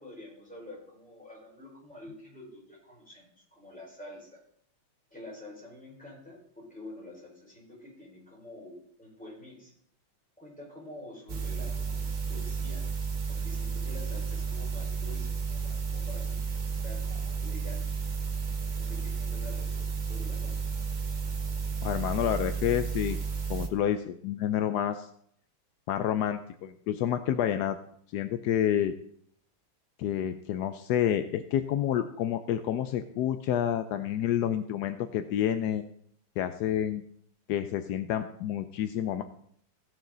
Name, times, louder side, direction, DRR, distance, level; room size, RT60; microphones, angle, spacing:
voice 1, 0.0-4.4 5.1-9.7 10.4-12.8 13.3-18.1 18.8-20.6, left 1 dB, 5° left, -5 dB, 4.6 m, -48 dB
sound 1, 11.3-23.7, right 5 dB, 55° right, 0.5 m, -32 dB
voice 2, 21.8-23.2 23.5-25.1 25.9-27.8 28.1-28.9 30.0-35.8 36.4-37.0 37.5-39.2, left 10 dB, 75° left, 9 dB, 0.9 m, -29 dB
16.5 x 6.4 x 3.9 m, 0.64 s
omnidirectional pair, 2.3 m